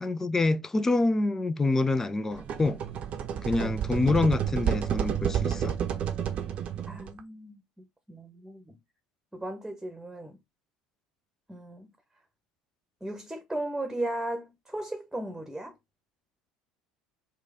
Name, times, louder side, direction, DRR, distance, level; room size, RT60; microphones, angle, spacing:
voice 1, 0.0-2.8 3.4-5.8, left 2 dB, 15° left, 0.4 m, -26 dB
sound 1, 2.3-7.2, right 9 dB, 40° right, 0.7 m, -30 dB
voice 2, 6.9-7.6 8.1-8.8 9.3-10.4 11.5-11.9 13.0-15.7, right 1 dB, 5° right, 0.9 m, -36 dB
4.6 x 2.3 x 3.5 m
figure-of-eight pair, 65°, 3 cm